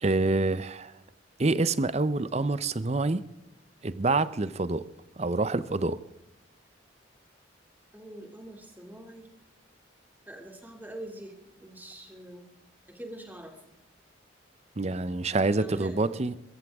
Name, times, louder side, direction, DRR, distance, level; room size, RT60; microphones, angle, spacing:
voice 1, 0.0-0.9 1.4-3.2 3.8-4.8 5.2-6.0 14.8-16.4, right 3 dB, 35° right, 15 dB, 0.6 m, -27 dB
voice 2, 7.9-9.3 10.3-12.5 12.9-13.7 15.4-16.1, right 1 dB, 10° right, 3 dB, 2.5 m, -44 dB
22.5 x 14.0 x 3.6 m, 0.92 s
head